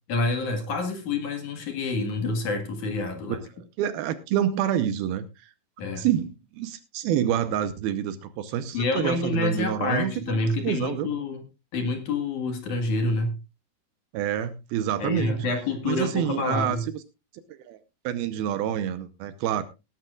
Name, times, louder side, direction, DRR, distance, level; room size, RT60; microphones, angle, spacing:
voice 1, 0.1-3.4 5.8-6.1 8.7-11.4 11.7-13.4 15.0-16.8, left 3 dB, 55° left, 6 dB, 2.7 m, -27 dB
voice 2, 3.3-5.2 6.0-10.4 10.6-11.1 14.1-15.5 15.8-17.0 17.5-17.8 18.0-19.6, right 10 dB, 75° right, 12 dB, 2.6 m, -27 dB
18.5 x 11.5 x 2.4 m, 0.26 s
omnidirectional pair, 4.7 m